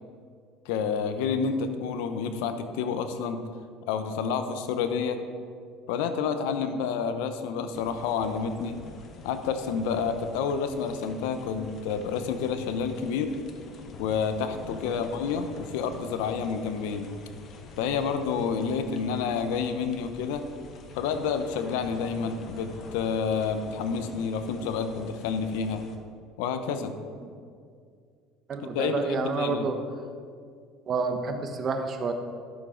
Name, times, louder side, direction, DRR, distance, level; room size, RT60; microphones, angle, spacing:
voice 1, 0.6-3.4 3.9-5.2 5.9-8.8 9.2-13.3 14.0-17.1 17.8-20.4 20.9-25.8 26.4-26.9 28.7-29.7, left 6 dB, 85° left, 9 dB, 0.7 m, -29 dB
sound 1, 7.7-26.0, left 4 dB, 45° left, 1.0 m, -47 dB
voice 2, 28.5-29.8 30.9-32.1, right 4 dB, 40° right, 6 dB, 1.0 m, -30 dB
12.0 x 7.1 x 3.9 m, 2.2 s
supercardioid pair, 110°, 0 cm